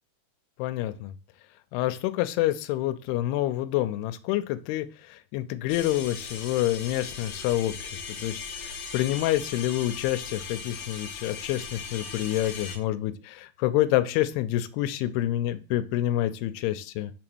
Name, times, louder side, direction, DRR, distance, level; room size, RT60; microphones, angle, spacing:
voice 1, 0.6-1.2 1.7-17.1, left 14 dB, 90° left, 11 dB, 2.6 m, -28 dB
sound 1, 5.7-12.8, left 5 dB, 75° left, 1.6 m, -38 dB
6.3 x 3.9 x 6.1 m, 0.34 s
omnidirectional pair, 4.6 m